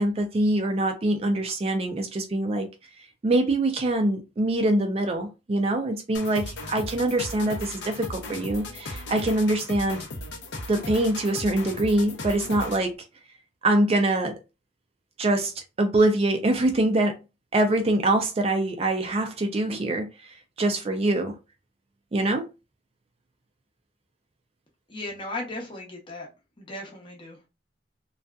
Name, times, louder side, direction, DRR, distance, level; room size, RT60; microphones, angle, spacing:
voice 1, 0.0-2.7 3.2-10.0 10.7-12.9 13.6-14.4 15.2-17.2 17.5-21.3 22.1-22.5, right 1 dB, 35° right, 0.3 m, -24 dB
sound 1, 6.1-12.9, left 2 dB, 80° left, 0.6 m, -37 dB
voice 2, 24.9-26.3 26.6-27.5, left 2 dB, 30° left, 0.7 m, -36 dB
2.6 x 2.3 x 2.2 m
head